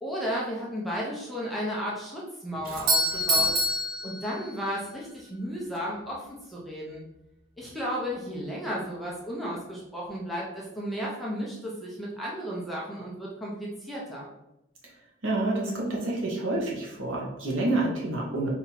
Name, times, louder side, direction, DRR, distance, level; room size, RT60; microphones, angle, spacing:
voice 1, 0.0-3.5 4.0-7.0 7.6-14.3, equal, ahead, -5 dB, 0.8 m, -34 dB
Doorbell, 2.6-4.8, equal, 45° right, 0.8 m, -26 dB
voice 2, 15.2-18.5, right 2 dB, 70° right, -3 dB, 1.3 m, -28 dB
4.2 x 2.9 x 4.1 m, 0.88 s
head